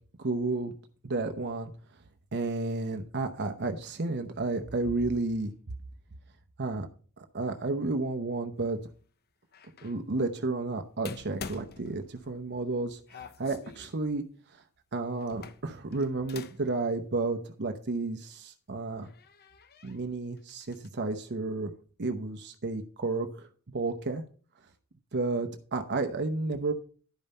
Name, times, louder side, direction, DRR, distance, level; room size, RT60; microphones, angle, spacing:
voice 1, 0.2-0.7 1.0-1.7 2.3-5.5 6.6-6.9 7.2-8.8 9.8-14.2 14.5-14.6 14.9-19.1 19.8-21.7 22.0-24.2 25.1-26.7, right 3 dB, 50° right, 6 dB, 0.8 m, -32 dB
sound 1, 9.5-10.0 11.0-12.5 13.1-14.0 15.2-16.7 17.0-17.1 18.4-18.5 19.0-20.0 20.4-20.9, left 5 dB, 45° left, 0.7 m, -46 dB
11.5 x 5.4 x 5.4 m, 0.41 s
head